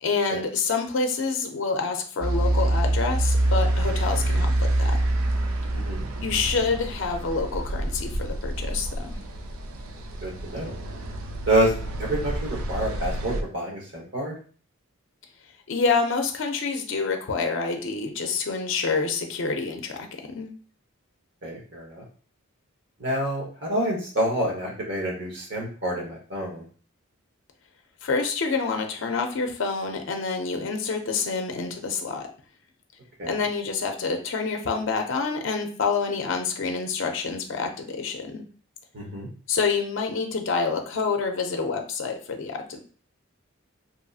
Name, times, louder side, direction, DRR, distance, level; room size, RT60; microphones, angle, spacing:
voice 1, 0.0-5.0 6.2-9.2 15.7-20.0 20.3-20.5 28.0-32.3 33.3-38.4 39.5-42.8, left 4 dB, 60° left, 4 dB, 0.4 m, -27 dB
sound 1, 2.2-13.4, right 1 dB, 85° right, 0.4 m, -26 dB
voice 2, 5.7-6.0 10.2-10.7 11.5-11.7 12.0-14.3 21.4-22.0 23.0-26.6 33.2-33.3 38.9-39.3, right 1 dB, 55° right, -1 dB, 1.0 m, -27 dB
2.8 x 2.5 x 2.3 m, 0.41 s
head